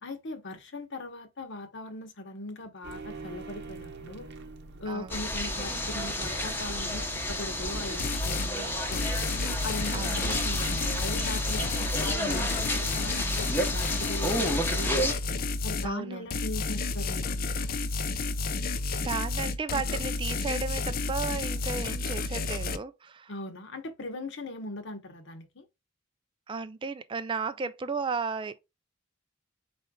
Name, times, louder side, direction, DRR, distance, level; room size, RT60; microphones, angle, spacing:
voice 1, 0.0-4.3 4.8-9.1 9.6-15.1 15.6-17.4 23.3-25.6, left 2 dB, 60° left, 1.0 m, -39 dB
sound 1, 2.8-11.0, right 3 dB, 55° right, 0.8 m, -46 dB
sound 2, 5.1-15.1, left 1 dB, 10° left, 0.8 m, -31 dB
sound 3, 8.0-8.5 8.9-15.9 16.3-22.8, left 3 dB, 45° left, 0.5 m, -31 dB
voice 2, 9.9-10.3 11.8-11.9 15.8-16.2 19.0-23.3 26.5-28.6, right 4 dB, 25° right, 0.3 m, -34 dB
4.4 x 4.3 x 2.3 m
head